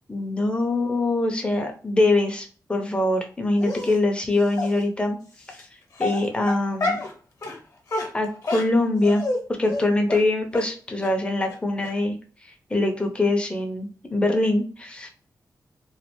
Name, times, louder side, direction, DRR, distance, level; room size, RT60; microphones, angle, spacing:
voice 1, 0.1-5.2 5.5-5.6 6.0-7.0 8.1-9.3 9.6-12.2 12.4-15.1, left 2 dB, 15° left, 3 dB, 0.6 m, -23 dB
Dog, 3.6-4.0 4.6-4.7 5.5-5.6 6.0-7.1 7.4-7.6 7.9-9.4 9.7-9.8 10.1-10.2 10.5-10.7 11.0-11.1 11.5-11.6 11.8-11.9, left 2 dB, 50° left, 0.9 m, -28 dB
3.1 x 2.3 x 2.9 m, 0.42 s
wide cardioid pair, 140°, 7 cm